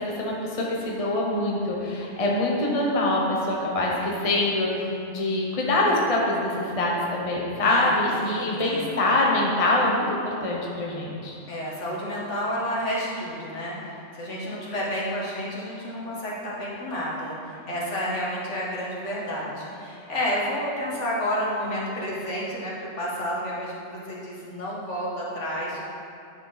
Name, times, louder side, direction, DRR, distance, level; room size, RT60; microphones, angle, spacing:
voice 1, 0.0-11.4, left 2 dB, 30° left, -3 dB, 1.0 m, -24 dB
voice 2, 7.6-7.9 8.2-8.9 11.5-25.8, equal, 70° left, -5 dB, 2.0 m, -30 dB
9.9 x 6.6 x 4.0 m, 2.7 s
omnidirectional pair, 1.3 m